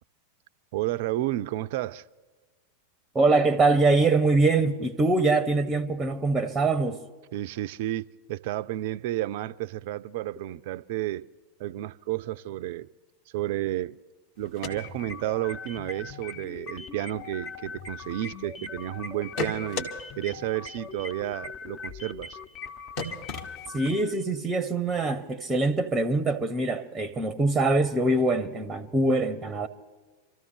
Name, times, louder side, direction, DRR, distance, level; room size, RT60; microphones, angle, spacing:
voice 1, 0.7-2.0 7.3-11.2 11.6-12.9 13.3-14.0 14.4-19.9 20.2-22.4, right 14 dB, 50° right, 0.4 m, -31 dB
voice 2, 3.1-7.0 23.7-29.7, right 3 dB, 10° right, 0.7 m, -23 dB
sound 1, 14.4-15.5 15.9-16.0 16.3-16.7 17.1-18.7 19.0-19.9 20.3-20.4 20.6-20.7 21.0-21.1 21.4-21.5 21.8-21.9 22.2-22.3 22.6-22.7 23.0-24.0, left 3 dB, 45° left, 1.6 m, -35 dB
heavenly computer, 14.7-24.2, left 6 dB, 25° left, 0.5 m, -42 dB
26.0 x 14.0 x 3.3 m
figure-of-eight pair, 90°, 0 cm